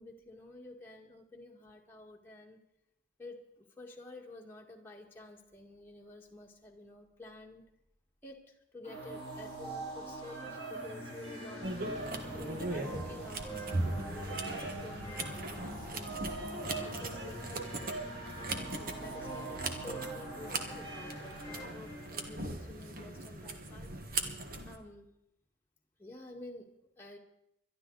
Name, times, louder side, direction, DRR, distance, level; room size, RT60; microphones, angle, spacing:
voice 1, 0.0-2.6 3.2-7.7 8.2-11.7 12.3-18.0 18.7-24.3 24.7-25.1 26.0-27.2, left 2 dB, 10° left, -1 dB, 1.8 m, -50 dB
sound 1, 8.8-22.3, right 2 dB, 25° right, 7.8 m, -43 dB
Bird vocalization bird call bird song, 10.2-18.3, right 2 dB, 70° right, 1.8 m, -46 dB
sound 2, 11.6-24.7, right 2 dB, 50° right, 1.5 m, -40 dB
21.5 x 12.0 x 4.0 m, 0.82 s
head